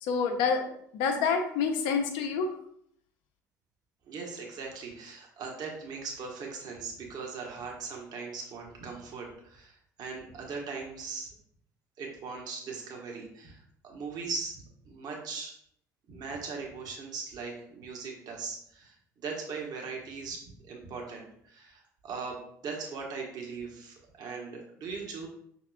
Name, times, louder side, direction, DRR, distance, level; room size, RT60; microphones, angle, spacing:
voice 1, 0.0-2.5, left 5 dB, 55° left, 4 dB, 0.7 m, -28 dB
voice 2, 4.1-11.4 12.0-15.5 16.1-25.3, right 4 dB, 45° right, -1 dB, 1.0 m, -39 dB
5.7 x 2.9 x 2.2 m, 0.68 s
figure-of-eight pair, 60°, 10 cm